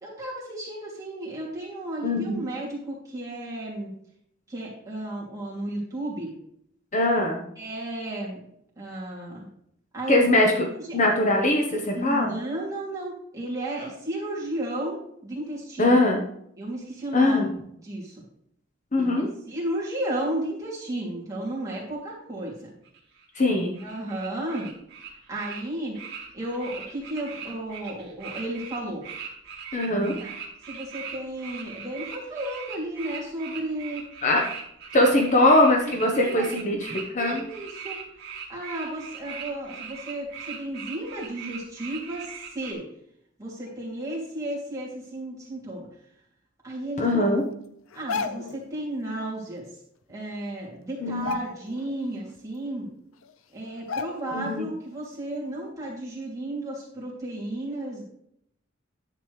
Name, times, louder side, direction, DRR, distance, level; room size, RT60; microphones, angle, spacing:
voice 1, 0.0-3.9 4.5-6.3 7.6-8.4 8.8-9.4 9.9-10.2 10.4-11.0 11.9-15.9 16.6-17.4 17.8-18.1 19.0-22.7 23.8-24.7 25.3-26.0 26.3-29.0 30.2-30.3 30.7-34.0 35.0-35.1 35.8-36.5 37.2-38.0 38.5-42.8 43.4-45.9 46.6-47.2 47.9-49.7 50.1-52.9 53.5-58.0, right 1 dB, 15° right, -6 dB, 2.8 m, -33 dB
voice 2, 2.0-2.4 6.9-7.4 10.1-10.5 10.9-12.3 15.8-16.2 17.1-17.5 18.9-19.3 23.4-23.8 29.7-30.2 34.2-34.4 34.9-37.4 47.0-47.4 51.0-51.4 54.3-54.7, left 1 dB, 35° left, 1 dB, 1.0 m, -21 dB
sound 1, 22.8-42.7, right 7 dB, 55° right, 2.2 m, -40 dB
sound 2, 47.9-48.6 50.1-50.2 50.5-50.7 51.1-52.0 52.4-52.5 53.2-53.3 53.9-54.5 54.9-55.0, left 5 dB, 80° left, 0.6 m, -33 dB
10.0 x 7.4 x 3.2 m, 0.71 s
head